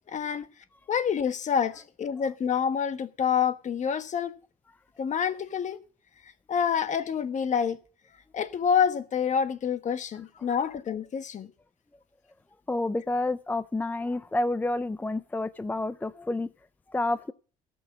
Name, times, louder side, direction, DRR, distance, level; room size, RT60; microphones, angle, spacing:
voice 1, 0.1-0.5 0.9-4.3 5.0-5.8 6.5-7.8 8.3-11.5, left 7 dB, 45° left, 1.4 m, -27 dB
voice 2, 12.7-16.5 16.9-17.3, left 2 dB, 10° left, 0.5 m, -29 dB
17.5 x 6.1 x 5.9 m
cardioid pair, 110°, 17 cm